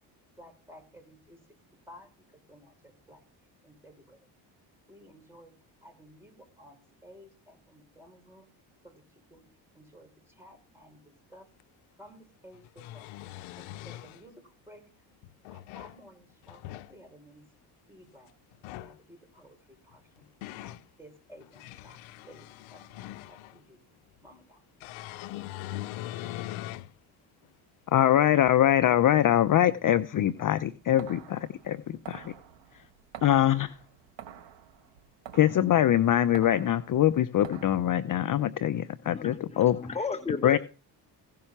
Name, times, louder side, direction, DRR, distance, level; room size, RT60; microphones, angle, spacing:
voice 1, 0.4-1.4 1.9-3.2 3.6-4.2 4.9-5.5 5.8-8.5 8.8-9.4 9.7-11.0 11.3-11.4 12.0-13.1 13.6-14.8 15.5-16.6 16.9-17.5 17.9-18.4 18.7-20.1 20.6-22.0 22.2-22.5 22.7-23.0 23.3-23.8 24.2-24.6, equal, 5° right, 3 dB, 6.0 m, -54 dB
sound 1, 11.6-11.7 12.5-14.2 15.2-16.0 16.4-16.9 18.5-19.0 19.9-20.8 21.4-23.6 24.8-26.9 27.4-27.5 29.1-29.2, left 15 dB, 85° left, 0.7 m, -41 dB
voice 2, 27.9-32.2 33.2-33.7 35.3-39.8 40.4-40.6, left 11 dB, 45° left, 12 dB, 0.6 m, -23 dB
sound 2, 30.3-37.8, right 9 dB, 65° right, 1.9 m, -48 dB
voice 3, 39.1-40.6, left 4 dB, 15° left, 8 dB, 1.1 m, -34 dB
16.5 x 5.6 x 5.9 m, 0.35 s
supercardioid pair, 75°, 47 cm